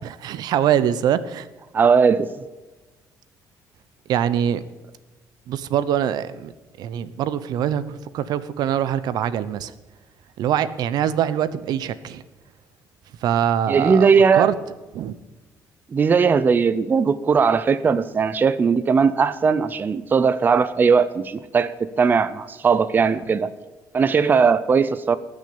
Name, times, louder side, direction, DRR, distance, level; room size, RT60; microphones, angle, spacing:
voice 1, 0.0-1.5 4.1-4.6 5.5-6.5 6.8-9.7 10.4-12.2 13.2-14.5 14.9-15.1, right 10 dB, 75° right, 15 dB, 0.8 m, -23 dB
voice 2, 1.7-2.3 13.7-14.5 15.9-23.5 23.9-25.2, right 5 dB, 30° right, 14 dB, 0.6 m, -18 dB
19.0 x 6.5 x 8.6 m, 1.2 s
cardioid pair, 145°, 7 cm